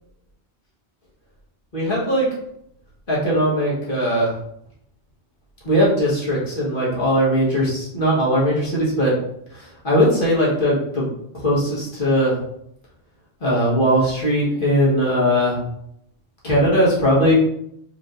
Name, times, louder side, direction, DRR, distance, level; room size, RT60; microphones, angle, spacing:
voice 1, 1.7-2.3 3.1-4.4 5.6-9.1 9.5-11.1 11.3-12.4 13.4-15.6 16.4-17.3, equal, 50° left, -6 dB, 1.6 m, -19 dB
4.8 x 3.5 x 2.6 m, 0.75 s
omnidirectional pair, 1.1 m